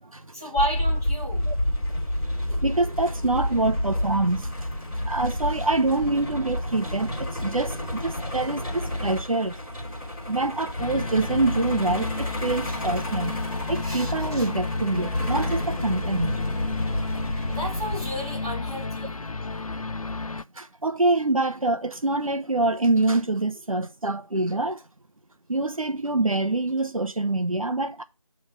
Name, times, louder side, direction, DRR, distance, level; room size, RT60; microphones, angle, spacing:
voice 1, 0.0-1.5 13.8-14.5 17.5-19.2, equal, 5° right, 1.0 m, -32 dB
Truck, 0.6-18.3, left 1 dB, 10° left, 1.9 m, -30 dB
voice 2, 2.5-4.8 5.0-10.0 10.3-13.4 13.7-16.4 20.5-24.8 25.5-28.0, right 2 dB, 70° right, 0.9 m, -25 dB
sound 1, 10.8-20.4, left 3 dB, 75° left, 0.6 m, -32 dB
8.0 x 3.5 x 6.3 m
figure-of-eight pair, 170°, 18 cm